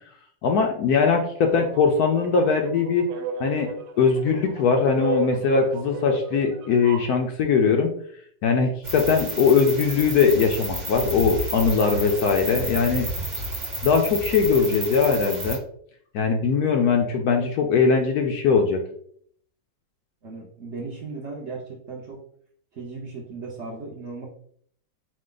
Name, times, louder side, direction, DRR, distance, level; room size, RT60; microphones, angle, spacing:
voice 1, 0.4-3.1 3.4-3.7 4.0-7.9 8.4-13.1 13.8-15.6 16.1-18.8, left 5 dB, 70° left, 4 dB, 0.9 m, -21 dB
sound 1, 1.5-7.2, right 5 dB, 85° right, 1.3 m, -34 dB
sound 2, 8.8-15.6, right 1 dB, 30° right, 1.1 m, -31 dB
voice 2, 20.2-22.2 22.7-24.2, right 4 dB, 55° right, -3 dB, 0.8 m, -36 dB
4.9 x 2.2 x 3.8 m, 0.64 s
omnidirectional pair, 1.9 m